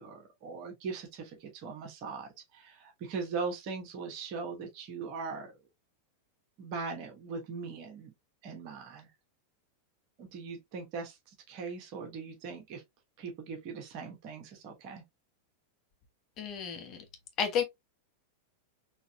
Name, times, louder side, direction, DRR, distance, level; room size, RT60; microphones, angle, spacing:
voice 1, 0.0-5.6 6.6-8.1 8.4-9.1 10.2-12.8 13.2-15.0, right 4 dB, 45° right, 1.0 m, -40 dB
voice 2, 16.4-17.0 17.4-17.6, left 7 dB, 35° left, 1.1 m, -31 dB
4.0 x 3.0 x 2.2 m
figure-of-eight pair, 90°, 0 cm